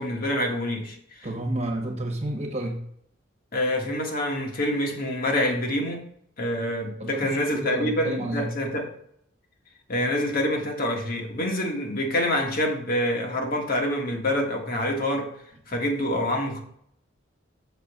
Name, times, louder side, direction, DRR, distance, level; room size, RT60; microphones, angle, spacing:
voice 1, 0.0-1.3 3.5-6.1 6.4-8.9 9.9-15.3 15.7-16.6, left 1 dB, 45° left, 1 dB, 1.6 m, -26 dB
voice 2, 1.2-2.8 7.0-8.5, right 1 dB, 35° right, 3 dB, 1.5 m, -30 dB
6.8 x 4.3 x 6.7 m, 0.67 s
head